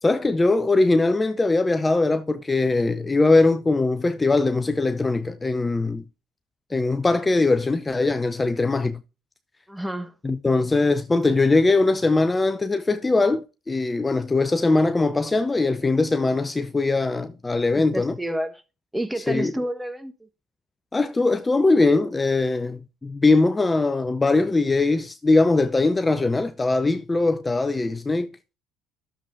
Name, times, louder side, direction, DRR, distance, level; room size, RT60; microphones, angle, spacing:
voice 1, 0.0-6.0 6.7-9.0 10.2-18.2 19.2-19.5 20.9-28.3, left 3 dB, 20° left, 0.7 m, -21 dB
voice 2, 9.7-10.1 17.7-18.5 18.9-20.1, right 1 dB, 5° right, 1.3 m, -29 dB
12.5 x 7.3 x 2.6 m
hypercardioid pair, 65°, 0 cm